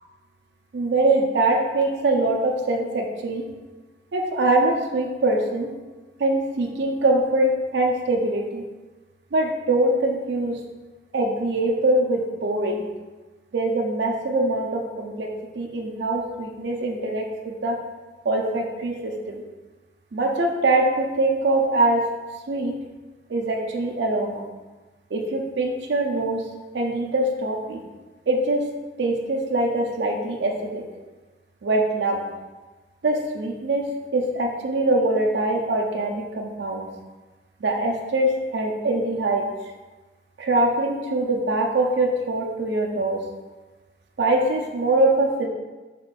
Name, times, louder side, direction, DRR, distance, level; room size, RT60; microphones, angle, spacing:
voice 1, 0.7-3.5 4.1-5.7 6.2-8.6 9.3-10.6 11.1-12.9 13.5-17.8 18.2-19.4 20.1-22.0 22.5-22.7 23.3-24.4 25.1-26.4 26.7-27.8 28.3-28.6 29.0-30.8 31.6-32.2 33.0-33.9 34.1-36.9 37.6-39.5 40.4-43.2 44.2-45.5, right 2 dB, 65° right, 1 dB, 0.5 m, -23 dB
3.7 x 3.5 x 2.4 m, 1.2 s
head